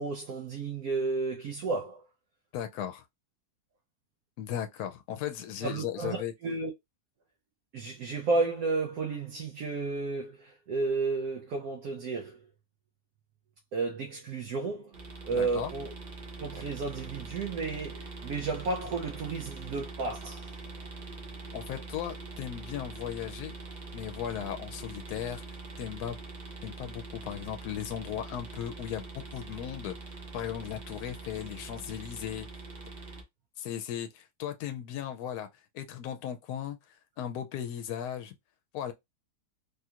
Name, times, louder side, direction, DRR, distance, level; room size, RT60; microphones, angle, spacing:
voice 1, 0.0-2.0 5.6-6.7 7.7-12.4 13.7-14.9 15.2-15.9 16.4-20.5, right 3 dB, 70° right, 1.1 m, -32 dB
voice 2, 2.5-3.0 4.4-6.3 15.3-15.7 21.5-23.6 23.9-25.4 25.8-26.2 26.6-30.0 30.3-32.5 33.6-35.5 35.7-36.8 37.2-38.3 38.7-38.9, left 10 dB, 75° left, 1.1 m, -36 dB
sound 1, 14.9-33.2, right 3 dB, 45° right, 0.5 m, -43 dB
3.4 x 2.4 x 2.8 m
omnidirectional pair, 1.7 m